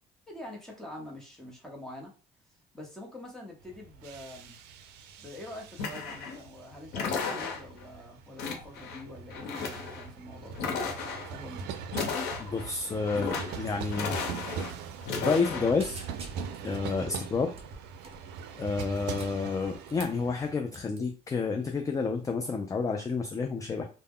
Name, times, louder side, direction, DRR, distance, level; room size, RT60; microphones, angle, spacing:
voice 1, 0.3-2.1 2.5-4.6 5.2-11.0 11.3-11.7, left 1 dB, 5° left, -1 dB, 0.9 m, -45 dB
sound 1, 3.6-20.5, right 6 dB, 85° right, 0.4 m, -42 dB
sound 2, 5.8-6.4 6.9-7.8 8.4-9.0 9.3-10.1 10.5-11.3 11.9-12.7 13.1-13.6 13.9-14.7 15.0-15.7, left 5 dB, 90° left, 0.7 m, -34 dB
voice 2, 12.4-14.2 15.2-16.0 16.6-17.5 18.5-23.8, left 4 dB, 20° left, 4 dB, 0.3 m, -30 dB
sound 3, 14.1-14.3 14.5-14.7 15.1-15.5 15.8-16.7 17.5-18.2 18.8-20.2 20.7-21.0, right 3 dB, 35° right, 0.6 m, -47 dB
2.1 x 2.0 x 3.5 m, 0.35 s
cardioid pair, 110°, 17 cm